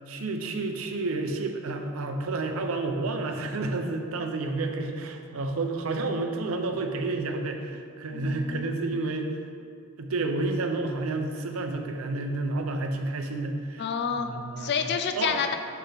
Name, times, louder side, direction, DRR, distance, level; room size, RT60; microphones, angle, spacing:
voice 1, 0.1-9.3 10.0-13.9 14.2-14.8 15.2-15.4, right 2 dB, 85° right, 5 dB, 0.6 m, -30 dB
voice 2, 8.1-8.7 13.8-14.3 14.6-15.6, left 6 dB, 55° left, 7 dB, 0.4 m, -29 dB
5.6 x 5.6 x 3.5 m, 2.3 s
head